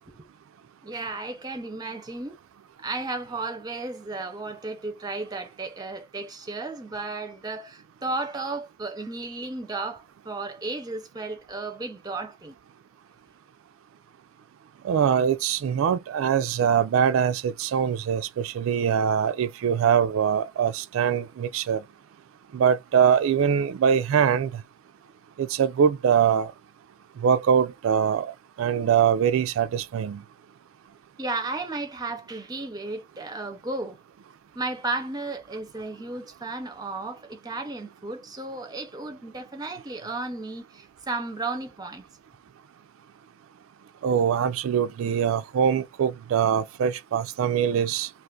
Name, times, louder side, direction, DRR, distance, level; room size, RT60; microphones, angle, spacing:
voice 1, 0.8-2.4 2.8-12.5 31.2-34.0 34.5-42.1, right 3 dB, 20° right, 0.6 m, -34 dB
voice 2, 14.8-21.8 22.5-24.6 25.4-26.5 27.2-30.2 44.0-48.1, right 8 dB, 80° right, 0.3 m, -23 dB
2.5 x 2.4 x 3.6 m
head